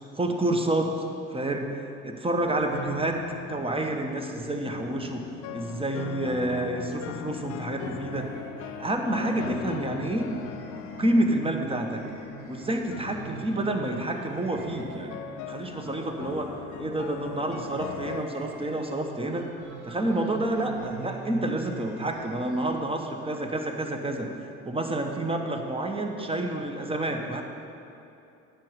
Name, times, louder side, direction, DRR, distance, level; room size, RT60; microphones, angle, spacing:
voice 1, 0.1-1.0 1.3-1.7 2.0-3.2 3.5-5.3 5.5-8.3 8.8-10.4 11.0-12.0 12.5-16.5 16.8-19.5 19.8-24.3 24.6-27.4, right 1 dB, 15° right, 4 dB, 1.2 m, -29 dB
sound 1, 2.4-18.2, left 11 dB, 45° left, 0.5 m, -40 dB
sound 2, 7.0-22.8, right 5 dB, 85° right, 1.9 m, -44 dB
10.5 x 5.2 x 7.4 m, 2.8 s
hypercardioid pair, 60°, 41 cm